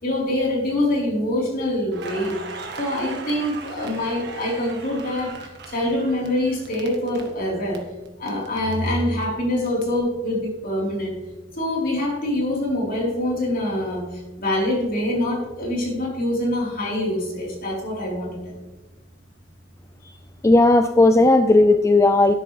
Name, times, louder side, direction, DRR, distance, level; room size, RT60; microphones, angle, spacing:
voice 1, 0.0-2.4 2.8-5.3 5.7-7.8 8.2-11.2 11.6-14.1 14.4-18.4, left 1 dB, 50° left, -3 dB, 4.0 m, -24 dB
Crackle, 1.9-7.8 8.1-9.8, right 4 dB, 60° right, 1.7 m, -38 dB
voice 2, 20.4-22.3, left 2 dB, 15° left, 8 dB, 0.4 m, -15 dB
12.5 x 10.5 x 3.3 m, 1.1 s
head